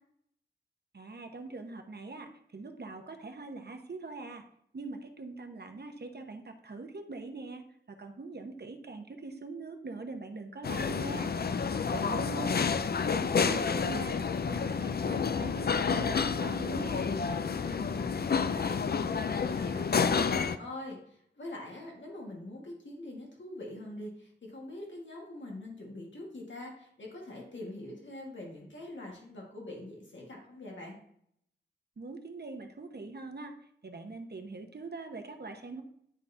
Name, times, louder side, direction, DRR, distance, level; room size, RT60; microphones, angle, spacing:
voice 1, 0.9-4.4 4.7-7.6 7.9-11.3 11.9-12.5 13.1-14.2 14.5-17.1 32.0-33.5 33.8-35.8, right 3 dB, 60° right, 5 dB, 0.9 m, -42 dB
sound 1, 10.6-20.6, left 5 dB, 60° left, 0.4 m, -29 dB
voice 2, 11.5-12.6 17.4-31.0, left 1 dB, 85° left, -1 dB, 1.7 m, -44 dB
9.8 x 4.1 x 3.4 m, 0.70 s
wide cardioid pair, 65°, 19 cm